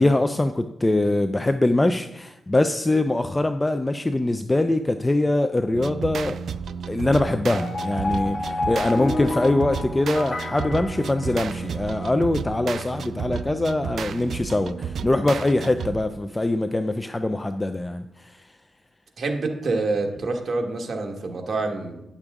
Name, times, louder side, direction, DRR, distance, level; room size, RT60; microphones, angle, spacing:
voice 1, 0.0-6.4 6.9-18.5, left 2 dB, 15° left, 9 dB, 0.4 m, -23 dB
sound 1, 5.7-16.2, right 6 dB, 70° right, 0.3 m, -32 dB
sound 2, 7.5-11.8, left 2 dB, 45° left, 1.3 m, -30 dB
voice 2, 19.2-22.0, right 3 dB, 50° right, 3 dB, 1.3 m, -27 dB
9.8 x 6.8 x 3.6 m, 0.94 s
cardioid pair, 95°, 0 cm